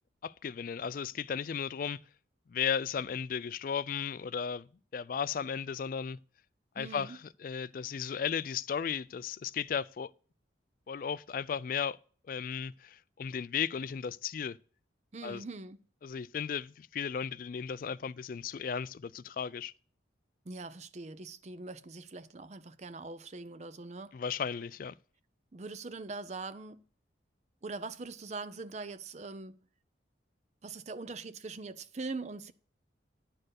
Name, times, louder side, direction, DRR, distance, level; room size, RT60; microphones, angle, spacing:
voice 1, 0.2-2.0 2.5-4.7 4.9-6.2 6.8-10.1 10.9-12.0 12.3-14.6 15.2-15.4 16.0-19.7 24.1-24.9, left 7 dB, 45° left, 0.3 m, -35 dB
voice 2, 6.8-7.2 15.1-15.8 20.5-24.2 25.5-26.8 27.6-29.6 30.6-32.5, right 3 dB, 35° right, 0.5 m, -42 dB
9.9 x 4.5 x 6.4 m
head